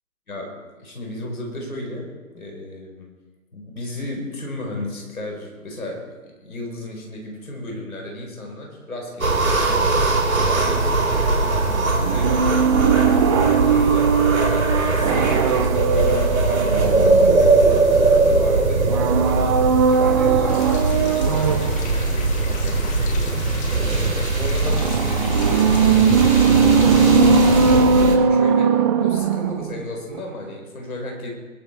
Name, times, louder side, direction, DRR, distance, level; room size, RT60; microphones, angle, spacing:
voice 1, 0.3-3.1 3.5-18.9 19.2-31.3, left 1 dB, 80° left, 0 dB, 4.8 m, -34 dB
sound 1, 9.2-28.2, right 3 dB, 75° right, 3.6 m, -20 dB
sound 2, 12.0-17.8 18.8-21.9 24.6-29.8 30.1-30.2, right 6 dB, 20° right, 0.5 m, -19 dB
sound 3, 20.5-27.8, left 4 dB, 15° left, 2.2 m, -36 dB
21.0 x 8.6 x 4.6 m, 1.3 s
figure-of-eight pair, 125°, 42 cm